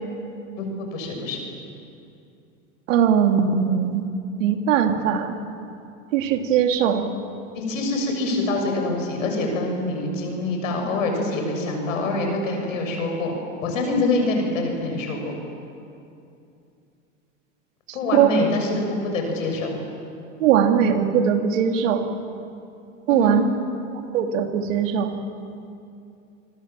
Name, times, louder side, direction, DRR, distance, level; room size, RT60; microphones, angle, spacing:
voice 1, 0.6-1.4 7.5-13.3 13.6-15.3 17.9-19.8 23.1-23.3, left 2 dB, 85° left, 2 dB, 7.3 m, -25 dB
voice 2, 2.9-4.1 4.4-5.3 6.1-7.1 18.1-18.3 20.4-22.0 23.1-23.4 24.1-25.2, right 8 dB, 75° right, 5 dB, 2.8 m, -20 dB
27.5 x 24.0 x 7.5 m, 2.6 s
hypercardioid pair, 95°, 38 cm